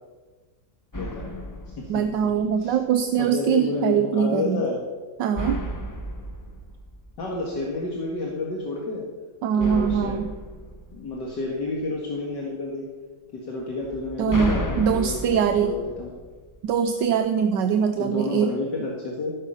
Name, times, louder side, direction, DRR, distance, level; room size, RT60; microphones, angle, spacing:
voice 1, 0.9-1.3 1.7-2.3 2.6-2.8 3.2-4.8 7.2-9.0 9.5-10.2 10.9-12.9 13.3-16.1 18.0-19.3, left 3 dB, 65° left, -2 dB, 2.3 m, -30 dB
sound 1, 0.9-2.8 5.3-7.8 9.6-11.9 13.8-16.9, equal, 20° left, 0.5 m, -34 dB
voice 2, 1.9-4.6 5.2-5.6 9.4-10.3 14.2-14.5 14.8-15.7 16.6-18.5, right 7 dB, 75° right, 8 dB, 1.3 m, -22 dB
15.0 x 8.2 x 5.6 m, 1.3 s
omnidirectional pair, 2.0 m